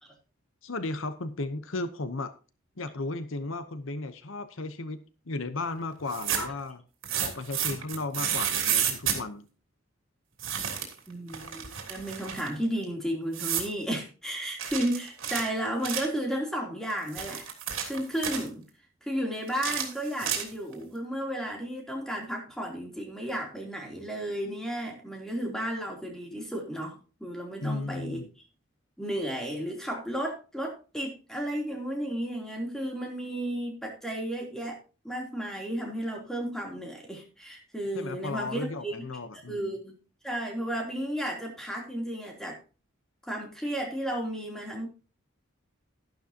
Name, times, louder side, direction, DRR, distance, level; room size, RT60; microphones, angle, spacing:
voice 1, 0.6-2.3 2.8-6.8 7.2-9.5 27.6-28.3 37.9-39.7, left 2 dB, 75° left, 11 dB, 0.9 m, -35 dB
sound 1, 6.0-6.6 7.0-9.2 10.4-11.0 11.3-12.5 13.3-13.7 14.6-16.2 16.9-18.5 19.5-20.7, right 9 dB, 75° right, 3.2 m, -31 dB
voice 2, 11.1-17.4 17.8-18.6 19.0-28.2 29.0-34.8 35.0-39.0 39.5-40.0 40.2-42.6 43.2-44.9, right 1 dB, ahead, 0 dB, 3.2 m, -33 dB
12.5 x 11.5 x 2.9 m, 0.33 s
head